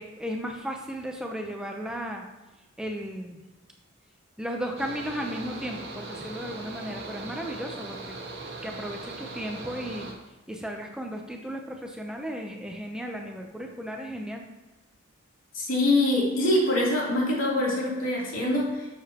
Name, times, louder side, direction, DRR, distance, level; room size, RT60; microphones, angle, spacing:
voice 1, 0.0-2.3 2.8-3.4 4.4-10.1 10.5-14.4, equal, 5° right, 1 dB, 0.6 m, -35 dB
Mechanical fan, 4.8-10.1, right 3 dB, 60° right, 2.0 m, -39 dB
voice 2, 15.5-18.9, left 1 dB, 65° left, -5 dB, 3.1 m, -24 dB
12.0 x 7.1 x 2.9 m, 1.1 s
head